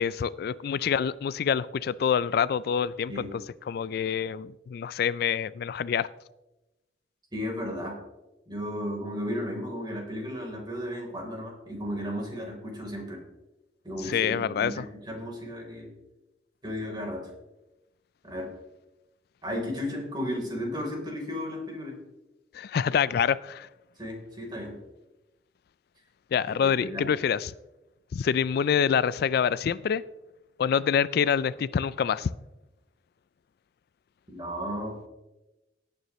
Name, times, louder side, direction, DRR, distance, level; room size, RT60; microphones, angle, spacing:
voice 1, 0.0-3.3 3.7-6.1 14.0-14.8 22.5-23.7 26.3-27.5 28.1-30.0 30.6-32.3, left 7 dB, 60° left, 18 dB, 0.3 m, -26 dB
voice 2, 7.3-8.0 8.5-13.2 13.8-15.9 16.6-17.3 18.2-18.5 19.4-21.9 24.0-24.7 26.6-27.1 34.3-35.1, equal, 25° right, -1 dB, 3.6 m, -34 dB
17.5 x 9.4 x 3.1 m, 1.0 s
head